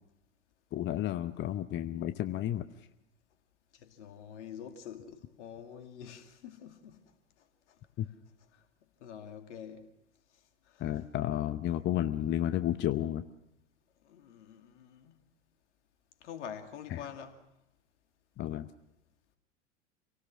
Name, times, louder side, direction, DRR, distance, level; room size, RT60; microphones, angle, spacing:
voice 1, 0.7-2.7 8.0-8.1 10.8-13.2 16.9-17.0 18.4-18.7, left 12 dB, 30° left, 0.8 m, -32 dB
voice 2, 3.7-7.0 8.5-8.6 9.0-9.9 10.7-11.0 14.0-15.2 16.2-17.4, left 8 dB, 65° left, 2.6 m, -46 dB
27.0 x 18.0 x 6.1 m
figure-of-eight pair, 85°, 38 cm